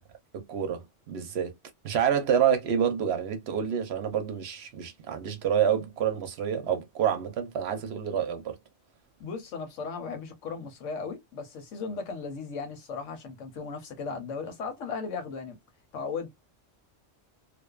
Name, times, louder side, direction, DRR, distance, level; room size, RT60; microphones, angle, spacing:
voice 1, 0.3-1.5 1.8-8.6, right 8 dB, 65° right, 0.8 m, -28 dB
voice 2, 9.2-15.6 15.9-16.3, left 5 dB, 80° left, 1.1 m, -36 dB
2.5 x 2.2 x 2.2 m
omnidirectional pair, 1.3 m